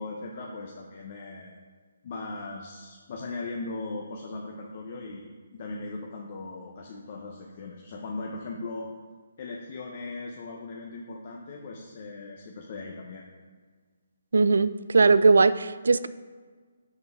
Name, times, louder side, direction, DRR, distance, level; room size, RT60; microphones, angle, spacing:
voice 1, 0.0-1.6 2.0-8.9 9.4-13.3, left 3 dB, 35° left, -1 dB, 0.7 m, -38 dB
voice 2, 14.3-16.1, right 4 dB, 85° right, 15 dB, 0.3 m, -20 dB
6.7 x 6.5 x 3.6 m, 1.5 s
hypercardioid pair, 175°, 0 cm